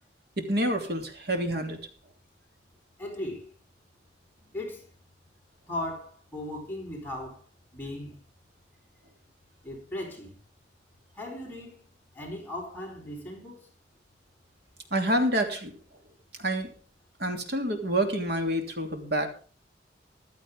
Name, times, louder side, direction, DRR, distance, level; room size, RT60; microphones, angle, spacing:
voice 1, 0.4-1.8 14.9-15.7 16.4-16.7 17.2-19.3, right 1 dB, 60° right, 3.0 m, -27 dB
voice 2, 3.0-3.5 4.5-4.8 5.7-7.4 7.7-8.2 9.6-10.3 11.1-11.8 12.1-13.7, left 1 dB, 10° left, 4.2 m, -37 dB
15.5 x 12.0 x 3.7 m
head